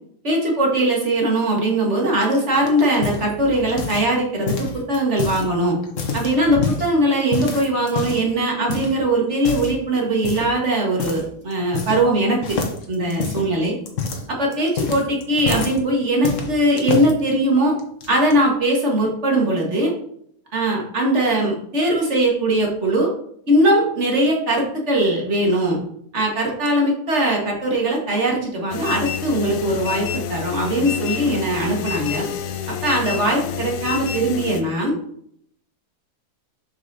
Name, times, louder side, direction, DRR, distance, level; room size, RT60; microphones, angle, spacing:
voice 1, 0.2-5.8 6.1-12.6 12.9-13.7 14.3-17.7 18.1-19.9 20.5-23.1 23.5-25.8 26.1-32.2 32.7-34.9, right 1 dB, 45° right, -1 dB, 1.7 m, -20 dB
sound 1, 2.2-4.2 4.5-5.5 5.8-6.9 7.3-8.3 8.7-9.0 9.4-9.8 10.2-10.6 11.0-11.2 11.5-12.2 12.4-15.8 16.2-17.1 17.8-18.3, left 5 dB, 55° left, 1.2 m, -27 dB
sound 2, 28.7-34.6, left 10 dB, 80° left, 1.2 m, -29 dB
6.6 x 5.6 x 2.7 m, 0.66 s
omnidirectional pair, 1.7 m